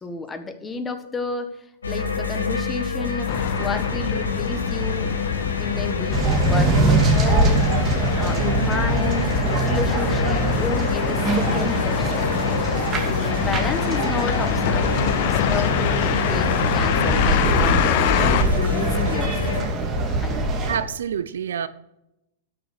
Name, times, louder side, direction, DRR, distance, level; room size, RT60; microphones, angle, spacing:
voice 1, 0.0-1.6 1.9-3.3 3.6-5.1 5.6-12.3 13.0-19.5 20.2-20.4, left 3 dB, 15° left, 8 dB, 1.5 m, -31 dB
sound 1, 1.8-19.7, left 5 dB, 85° left, 2.2 m, -27 dB
sound 2, 3.3-18.4, left 10 dB, 55° left, 1.0 m, -26 dB
sound 3, 6.1-20.8, right 2 dB, 30° right, 2.5 m, -23 dB
voice 2, 20.7-21.7, right 8 dB, 75° right, 15 dB, 0.7 m, -27 dB
12.0 x 6.7 x 6.5 m, 0.87 s
hypercardioid pair, 105°, 0 cm